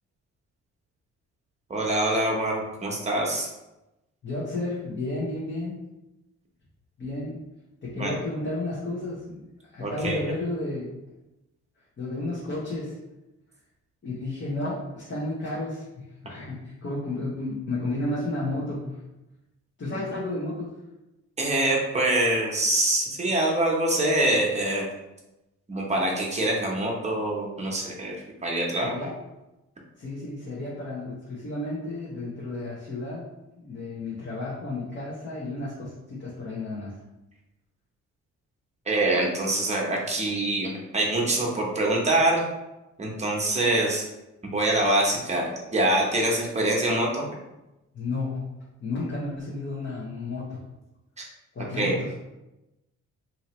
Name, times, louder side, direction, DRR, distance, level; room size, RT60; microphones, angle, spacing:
voice 1, 1.7-3.5 7.9-8.1 9.8-10.2 21.4-24.8 25.7-28.1 28.4-29.1 38.9-42.4 43.0-44.1 44.4-47.2 51.2-51.3 51.8-51.9, right 1 dB, 20° right, -1 dB, 0.9 m, -25 dB
voice 2, 4.2-5.7 7.0-7.4 7.8-9.4 9.7-10.9 12.0-13.0 14.0-19.0 19.8-20.7 28.8-29.1 30.0-33.3 33.6-37.0 47.9-48.5 48.8-50.6 51.5-52.1, left 2 dB, 40° left, -7 dB, 1.0 m, -32 dB
2.8 x 2.7 x 3.0 m, 0.96 s
cardioid pair, 90°, 30 cm